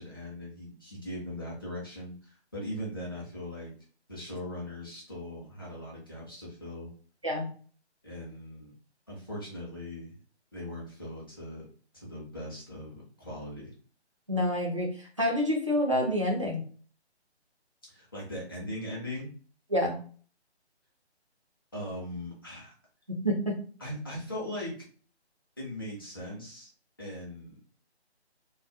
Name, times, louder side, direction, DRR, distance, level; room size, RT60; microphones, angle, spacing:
voice 1, 0.0-3.7 4.1-6.9 8.0-8.7 9.1-10.1 10.5-11.6 11.9-13.7 17.9-19.3 21.7-22.7 23.8-24.8 25.6-26.7 27.0-27.6, left 1 dB, 20° left, -5 dB, 0.5 m, -39 dB
voice 2, 14.3-16.6 19.7-20.0 23.1-23.6, left 1 dB, 30° right, -2 dB, 0.4 m, -28 dB
2.2 x 2.2 x 2.5 m, 0.42 s
figure-of-eight pair, 150°, 34 cm